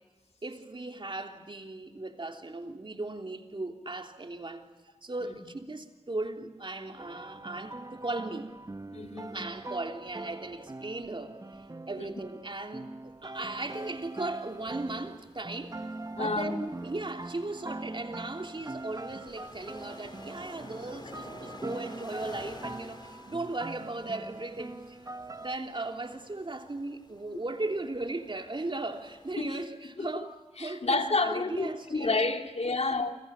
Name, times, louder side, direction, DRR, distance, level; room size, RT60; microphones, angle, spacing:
voice 1, 0.4-4.7 5.0-8.5 9.3-15.7 16.1-25.0 25.4-30.3 30.6-32.2, right 2 dB, 50° right, 3.3 m, -37 dB
sound 1, 7.0-25.6, right 2 dB, 30° right, 0.9 m, -43 dB
voice 2, 8.9-9.3 12.0-12.1 16.1-16.5 27.3-27.4 29.4-29.6 30.0-30.2 30.6-33.2, left 3 dB, 70° left, 2.5 m, -30 dB
sound 2, 13.3-29.7, left 2 dB, 40° left, 3.3 m, -52 dB
28.5 x 26.0 x 7.2 m
wide cardioid pair, 55°, 11 cm